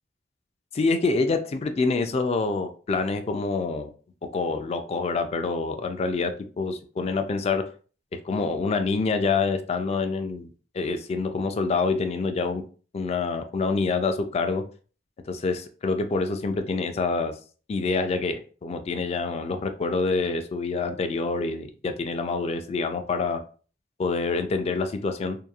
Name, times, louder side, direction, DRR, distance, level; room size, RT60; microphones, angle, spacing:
voice 1, 0.7-3.9 4.3-7.7 8.1-10.5 10.7-12.6 12.9-14.6 15.3-17.3 17.7-23.4 24.0-25.4, left 4 dB, 35° left, 8 dB, 0.3 m, -26 dB
2.8 x 2.2 x 2.3 m, 0.39 s
head